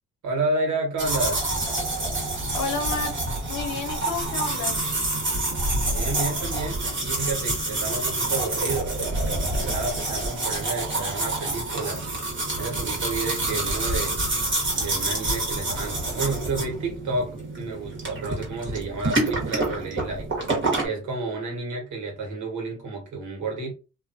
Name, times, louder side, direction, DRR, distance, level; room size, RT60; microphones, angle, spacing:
voice 1, 0.2-1.4 5.9-9.0 9.6-12.0 12.6-14.2 14.7-20.3 20.8-23.7, right 3 dB, 75° right, 1.4 m, -30 dB
sound 1, 1.0-20.9, right 2 dB, 40° right, 1.4 m, -27 dB
voice 2, 2.5-4.9, left 5 dB, 75° left, 0.8 m, -31 dB
2.6 x 2.4 x 2.6 m
cardioid pair, 90°, 30 cm